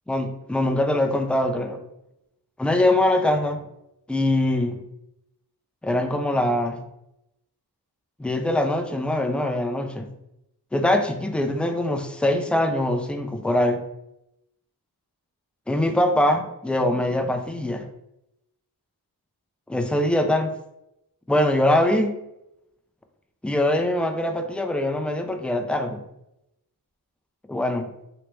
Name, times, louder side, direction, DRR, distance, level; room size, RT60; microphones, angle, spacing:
voice 1, 0.1-1.8 2.6-3.6 4.1-4.8 5.8-6.8 8.2-10.1 10.7-13.8 15.7-17.9 19.7-20.5 21.3-22.1 23.4-26.0 27.5-27.9, left 1 dB, 5° left, 6 dB, 0.4 m, -23 dB
3.2 x 3.1 x 3.1 m, 0.85 s
cardioid pair, 60°, 39 cm